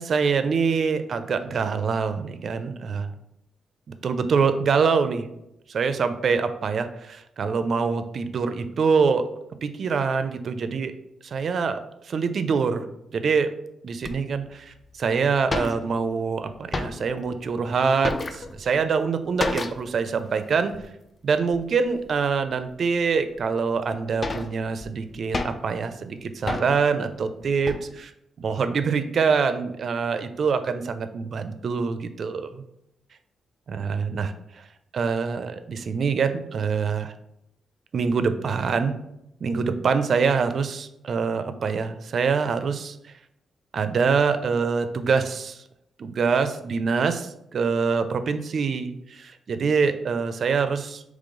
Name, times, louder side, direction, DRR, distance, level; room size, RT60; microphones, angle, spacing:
voice 1, 0.0-3.1 4.0-5.3 5.7-9.3 9.6-10.9 11.2-13.5 13.8-20.7 21.2-28.1 28.4-32.6 33.7-34.6 34.9-37.1 37.9-39.0 39.4-43.1 43.7-45.6 46.0-51.0, right 5 dB, 60° right, 10 dB, 0.4 m, -25 dB
sound 1, 14.0-14.1 14.8-14.9 15.1-15.2 15.4-16.2 16.5-17.3 17.6-18.8 19.4-20.0 20.3-20.4 20.7-20.9 21.5-22.0 22.6-22.7 23.4-23.5 23.9-25.8 26.5-26.9 27.4-27.9, left 2 dB, 30° left, 0.4 m, -31 dB
3.8 x 3.1 x 3.7 m, 0.81 s
cardioid pair, 95°, 0 cm